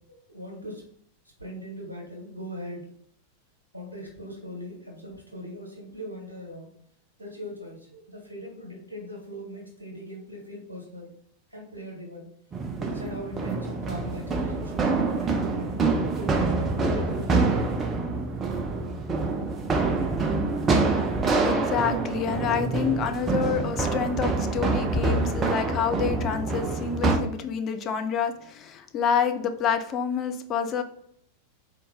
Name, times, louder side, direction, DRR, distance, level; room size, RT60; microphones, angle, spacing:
voice 1, 0.1-0.8 1.4-2.9 3.7-6.7 7.2-11.1 11.5-12.3 12.8-15.8 16.2-17.9, equal, 85° right, 0 dB, 1.2 m, -40 dB
sound 1, 12.5-27.2, right 3 dB, 20° right, 0.6 m, -26 dB
voice 2, 21.4-30.8, left 7 dB, 30° left, 8 dB, 0.4 m, -28 dB
3.8 x 2.8 x 3.7 m, 0.68 s
figure-of-eight pair, 90°, 0 cm